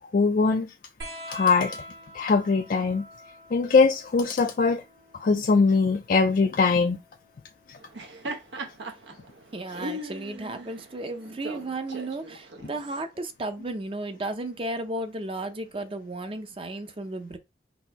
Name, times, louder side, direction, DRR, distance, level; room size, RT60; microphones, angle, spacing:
voice 1, 0.1-0.7 1.3-1.8 2.1-3.0 3.5-4.8 5.1-7.0, left 4 dB, 50° left, 0.4 m, -21 dB
sound 1, 1.0-8.1 9.4-10.3 11.6-11.7, equal, 65° right, 1.5 m, -46 dB
Laughter, 7.8-13.0, right 1 dB, 85° right, 0.9 m, -39 dB
voice 2, 9.5-17.4, right 2 dB, 30° right, 0.6 m, -34 dB
4.1 x 2.6 x 4.5 m
head